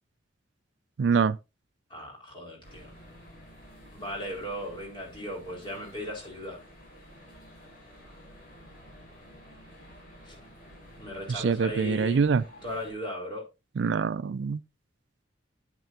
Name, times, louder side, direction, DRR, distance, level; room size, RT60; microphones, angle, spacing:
voice 1, 1.0-1.4 11.3-12.4 13.8-14.6, right 5 dB, 70° right, 0.4 m, -25 dB
voice 2, 1.9-2.9 3.9-6.6 10.3-10.4 11.0-12.2 12.6-13.4, equal, 25° left, 4.2 m, -37 dB
sound 1, 2.6-12.9, equal, 50° left, 5.1 m, -51 dB
9.2 x 8.3 x 2.7 m
head